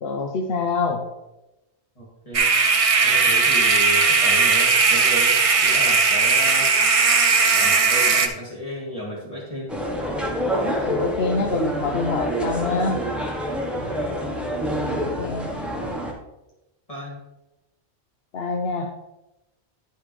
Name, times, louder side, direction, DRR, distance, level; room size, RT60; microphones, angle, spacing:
voice 1, 0.0-1.0 10.8-13.0 15.0-15.5 18.3-18.9, left 4 dB, 70° left, 2 dB, 1.0 m, -25 dB
voice 2, 2.0-2.5 3.0-6.7 7.5-9.7 13.5-14.0 16.9-17.2, equal, 30° left, -5 dB, 2.7 m, -33 dB
sound 1, 2.3-8.3, right 4 dB, 40° right, 0.5 m, -18 dB
sound 2, 9.7-16.1, equal, ahead, 1.0 m, -27 dB
10.0 x 5.6 x 3.3 m, 0.96 s
omnidirectional pair, 1.1 m